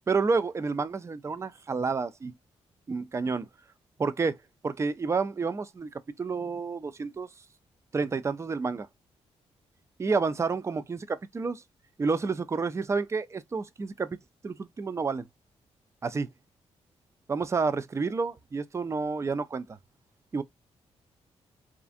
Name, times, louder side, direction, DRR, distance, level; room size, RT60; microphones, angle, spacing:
voice 1, 0.1-2.3 2.9-3.5 4.0-4.4 4.6-5.9 6.2-7.3 7.9-8.9 10.0-11.6 12.0-15.2 16.0-16.3 17.3-19.6 20.3-20.4, right 4 dB, 25° right, 0.3 m, -29 dB
2.5 x 2.4 x 2.4 m
cardioid pair, 80°, 12 cm